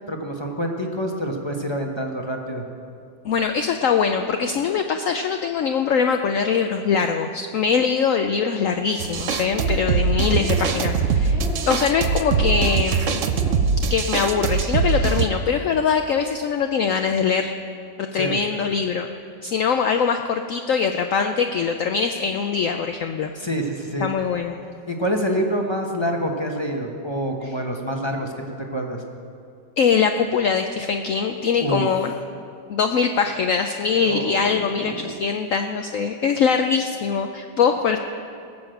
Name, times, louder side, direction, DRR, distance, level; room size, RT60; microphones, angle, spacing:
voice 1, 0.1-2.6 18.1-18.4 23.3-24.1 24.9-28.3 28.7-29.0 31.6-31.9 34.0-35.1, equal, 20° left, 1 dB, 0.8 m, -26 dB
voice 2, 3.2-13.2 13.8-17.5 18.0-19.1 19.4-23.3 24.0-24.6 29.8-32.1 32.7-38.0, left 6 dB, 75° left, 6 dB, 0.7 m, -22 dB
sound 1, 9.0-15.3, right 5 dB, 60° right, 0.8 m, -22 dB
sound 2, 9.4-10.0 10.3-10.8 11.2-11.8 12.3-12.8 13.2-13.6 14.1-14.5, right 1 dB, ahead, 1.9 m, -36 dB
18.5 x 7.1 x 7.8 m, 2.5 s
omnidirectional pair, 2.0 m